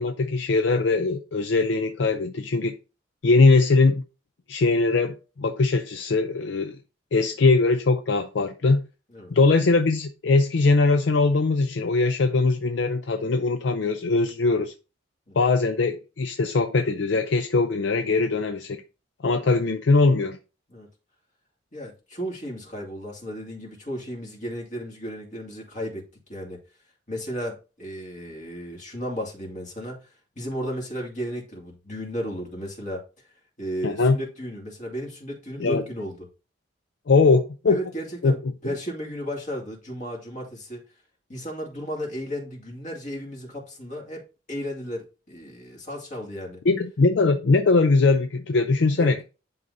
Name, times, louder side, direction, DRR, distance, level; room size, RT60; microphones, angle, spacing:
voice 1, 0.0-2.7 3.2-4.0 4.5-6.8 7.1-8.8 9.3-14.7 15.4-18.8 19.2-20.4 33.8-34.2 35.6-35.8 37.1-37.8 38.2-38.3 46.7-49.2, left 3 dB, 75° left, 0.5 m, -21 dB
voice 2, 21.7-26.6 27.1-33.0 33.6-36.3 37.7-40.8 41.3-44.2 44.5-46.6 49.0-49.1, equal, 45° left, 2.3 m, -34 dB
10.5 x 3.9 x 2.7 m
head